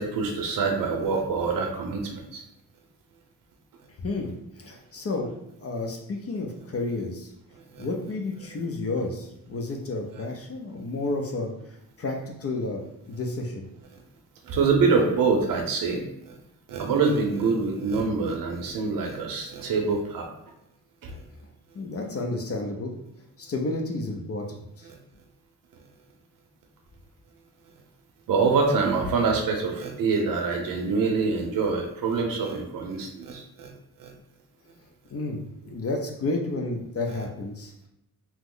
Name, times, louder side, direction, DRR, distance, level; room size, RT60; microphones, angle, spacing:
voice 1, 0.0-2.4 7.8-7.9 14.5-16.0 16.7-20.3 21.0-21.1 28.3-33.7 34.0-34.1, right 4 dB, 65° right, 2 dB, 0.6 m, -25 dB
voice 2, 4.0-5.3 5.6-7.3 7.8-12.8 13.1-13.6 21.7-23.0 23.4-24.9 35.1-37.9, left 2 dB, 40° left, 2 dB, 0.5 m, -31 dB
2.9 x 2.0 x 3.7 m, 0.79 s
cardioid pair, 95°, 35 cm